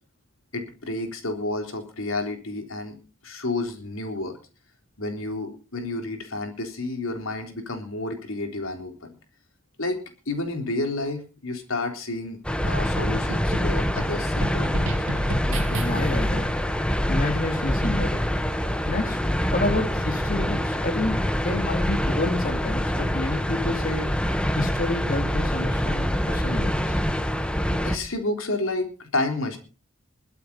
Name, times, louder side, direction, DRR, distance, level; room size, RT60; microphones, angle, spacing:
voice 1, 0.5-3.0 3.2-4.4 5.0-8.9 9.8-10.0 10.3-12.4 12.6-14.9 27.8-29.6, left 2 dB, 85° left, 4 dB, 3.8 m, -30 dB
sound 1, 12.4-28.0, equal, 5° left, 1.2 m, -25 dB
sound 2, 12.6-16.3, right 1 dB, 70° right, 2.0 m, -34 dB
voice 2, 15.4-16.5 17.1-18.3 18.9-19.2 19.5-24.1 24.5-27.0, left 2 dB, 45° left, 4 dB, 2.4 m, -29 dB
22.0 x 8.3 x 5.4 m, 0.36 s
head